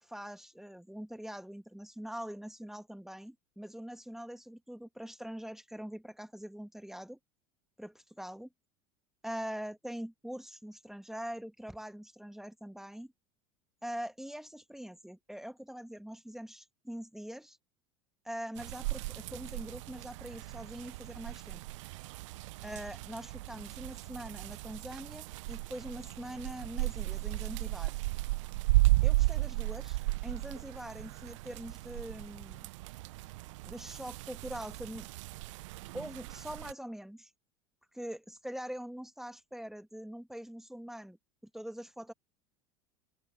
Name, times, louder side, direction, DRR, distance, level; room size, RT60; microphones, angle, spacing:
voice 1, 0.0-7.2 7.8-8.5 9.2-13.1 13.8-17.6 18.2-21.6 22.6-27.9 29.0-32.7 33.6-35.1 35.9-37.3 37.9-41.2 41.5-42.1, equal, ahead, 2.3 m, -43 dB
sound 1, 18.6-36.7, right 20 dB, 65° right, 0.9 m, -34 dB
open air
figure-of-eight pair, 75°, 17 cm